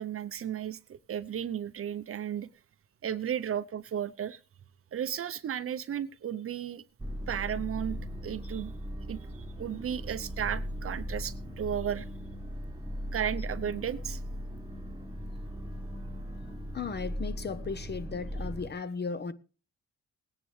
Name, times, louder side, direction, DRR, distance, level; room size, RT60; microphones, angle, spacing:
voice 1, 0.0-2.5 3.0-4.4 4.9-6.8 7.3-8.7 9.1-12.1 13.1-14.2, right 9 dB, 45° right, 0.7 m, -34 dB
sound 1, 7.0-18.7, equal, 15° right, 1.2 m, -38 dB
voice 2, 16.7-19.3, left 5 dB, 35° left, 0.9 m, -36 dB
19.5 x 9.9 x 3.2 m
cardioid pair, 90°, 30 cm